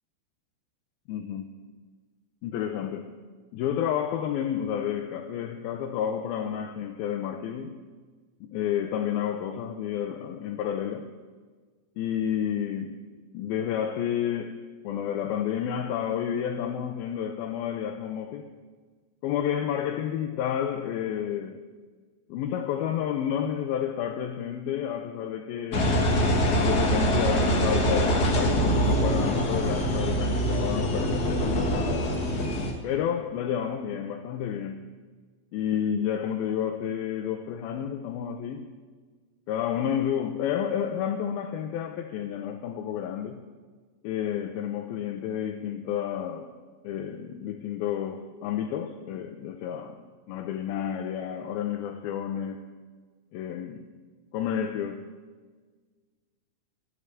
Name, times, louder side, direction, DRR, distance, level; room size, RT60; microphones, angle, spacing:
voice 1, 1.1-1.6 2.4-3.2 3.5-7.8 8.4-11.1 12.0-13.1 13.3-18.5 19.2-21.7 22.3-25.9 26.5-32.2 32.8-34.9 35.5-38.8 39.5-43.5 44.0-46.5 46.8-50.0 50.3-52.7 53.3-53.9 54.3-55.1, left 9 dB, 85° left, 2.6 m, -30 dB
Engine, 25.7-32.7, equal, 45° left, 1.3 m, -24 dB
14.5 x 8.1 x 8.9 m
omnidirectional pair, 4.2 m